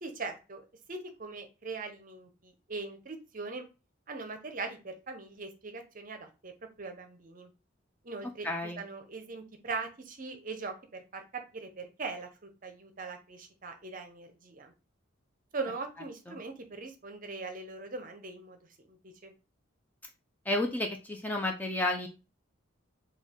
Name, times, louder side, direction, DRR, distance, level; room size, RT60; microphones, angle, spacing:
voice 1, 0.0-3.7 4.1-6.5 6.8-7.5 8.0-14.7 15.5-19.3, right 3 dB, 40° right, 6 dB, 0.7 m, -41 dB
voice 2, 8.4-8.8 16.3-16.4 20.5-22.1, left 2 dB, 10° left, 2 dB, 0.5 m, -31 dB
4.5 x 2.3 x 3.6 m, 0.30 s
head